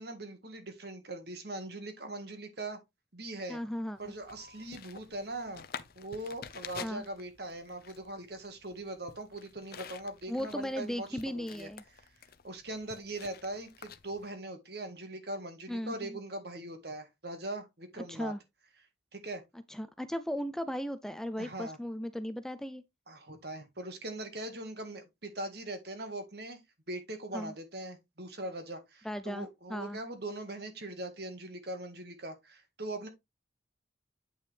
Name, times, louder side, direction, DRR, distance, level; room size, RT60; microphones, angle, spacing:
voice 1, 0.0-2.8 3.1-3.6 4.0-5.7 6.0-11.7 12.4-18.3 19.1-19.4 21.4-21.8 23.1-26.6 26.9-33.1, right 1 dB, 55° right, 1.8 m, -41 dB
voice 2, 3.5-4.1 6.8-7.0 10.3-11.8 15.7-16.2 18.1-18.4 19.7-22.8 27.3-27.5 29.0-30.0, equal, 5° left, 0.4 m, -36 dB
sound 1, 4.0-14.3, left 6 dB, 50° left, 0.7 m, -49 dB
8.8 x 5.5 x 3.3 m
head